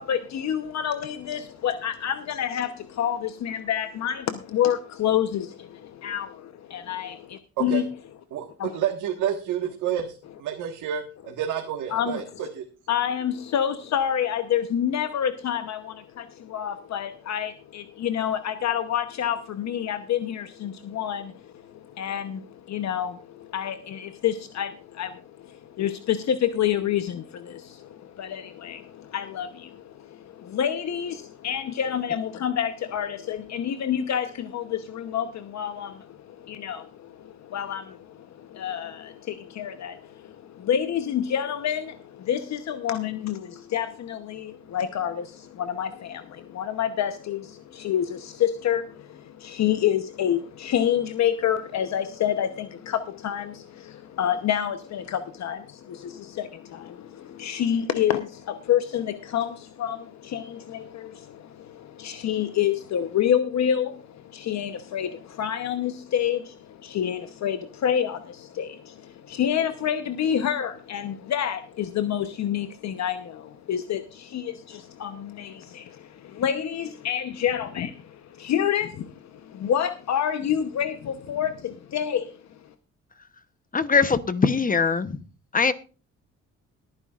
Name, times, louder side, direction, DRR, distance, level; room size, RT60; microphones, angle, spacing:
voice 1, 0.0-7.8 8.6-8.7 11.9-12.2 12.9-82.7, left 9 dB, 65° left, 0.9 m, -28 dB
voice 2, 8.7-12.6, right 9 dB, 85° right, 1.6 m, -29 dB
voice 3, 83.7-85.2 85.5-85.7, left 5 dB, 25° left, 0.9 m, -21 dB
21.5 x 9.7 x 2.5 m
cardioid pair, 90°, 30 cm